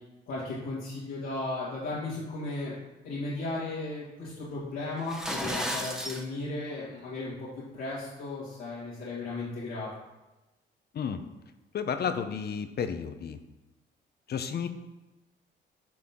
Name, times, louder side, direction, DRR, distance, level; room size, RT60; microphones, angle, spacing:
voice 1, 0.3-2.8 3.0-9.9, left 2 dB, 85° left, -10 dB, 2.2 m, -35 dB
sound 1, 5.0-6.2, equal, 5° right, 1.0 m, -33 dB
voice 2, 11.7-13.4 14.3-14.7, left 7 dB, 55° left, 9 dB, 0.8 m, -32 dB
10.5 x 4.3 x 3.7 m, 1.1 s
cardioid pair, 90°, 20 cm